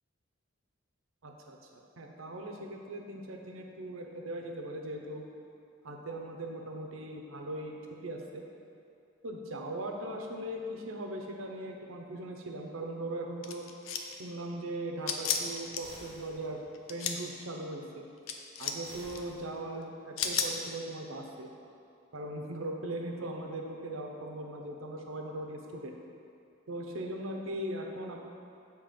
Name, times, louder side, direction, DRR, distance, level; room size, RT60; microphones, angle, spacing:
voice 1, 1.2-1.6 2.0-5.3 5.8-8.4 9.2-13.6 14.2-16.6 16.9-18.0 18.6-21.5 22.1-26.0 26.7-28.2, right 1 dB, 90° right, 2 dB, 0.7 m, -39 dB
sound 1, 13.4-14.2 15.1-15.8 16.7-17.2 18.3-18.8 19.1-19.2 20.2-20.5, left 7 dB, 85° left, 0.5 m, -32 dB
sound 2, 15.8-16.8 18.8-19.9, right 1 dB, 25° right, 1.0 m, -53 dB
7.3 x 3.0 x 5.1 m, 2.6 s
head